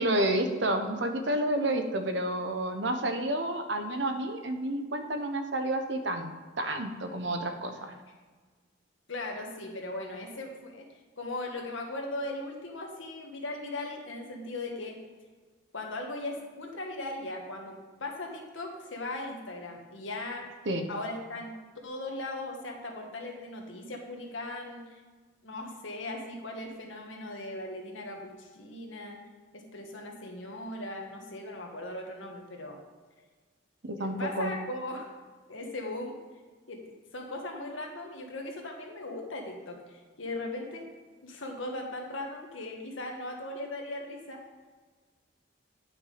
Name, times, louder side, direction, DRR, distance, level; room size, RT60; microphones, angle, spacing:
voice 1, 0.0-7.9 20.7-20.8 33.8-34.5, right 1 dB, 65° right, 6 dB, 0.9 m, -30 dB
voice 2, 9.1-10.9 11.2-15.0 15.7-20.5 20.9-21.5 21.8-25.0 25.4-29.2 29.5-32.8 34.0-35.1 35.5-36.2 36.7-36.8 37.1-40.9 41.2-44.4, left 2 dB, 85° left, 2 dB, 1.6 m, -38 dB
9.6 x 6.1 x 5.0 m, 1.4 s
head